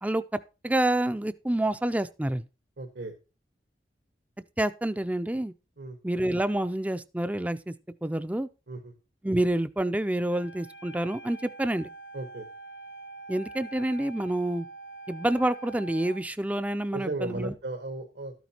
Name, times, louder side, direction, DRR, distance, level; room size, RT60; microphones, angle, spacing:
voice 1, 0.0-2.4 4.6-5.5 6.0-7.7 8.0-8.5 9.2-11.9 13.3-14.7 15.1-17.5, right 1 dB, 10° right, 0.4 m, -28 dB
voice 2, 2.8-3.1 5.8-6.0 8.7-8.9 12.1-12.5 16.9-18.3, right 2 dB, 80° right, 1.4 m, -35 dB
Wind instrument woodwind instrument, 10.3-16.3, right 3 dB, 80° left, 0.7 m, -45 dB
13.0 x 9.3 x 2.9 m
head